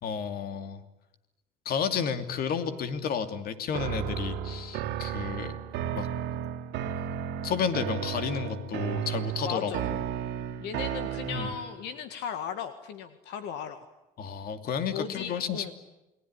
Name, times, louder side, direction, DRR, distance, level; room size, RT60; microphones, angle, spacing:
voice 1, 0.0-0.8 1.6-5.6 5.9-6.1 7.4-10.0 11.3-11.5 14.2-15.7, left 7 dB, 65° left, 9 dB, 2.8 m, -32 dB
sound 1, 3.7-11.8, right 9 dB, 90° right, 2.5 m, -33 dB
voice 2, 9.5-9.8 10.6-13.8 14.9-15.7, left 7 dB, 85° left, 9 dB, 1.9 m, -36 dB
29.5 x 20.5 x 10.0 m, 0.95 s
cardioid pair, 110°, 17 cm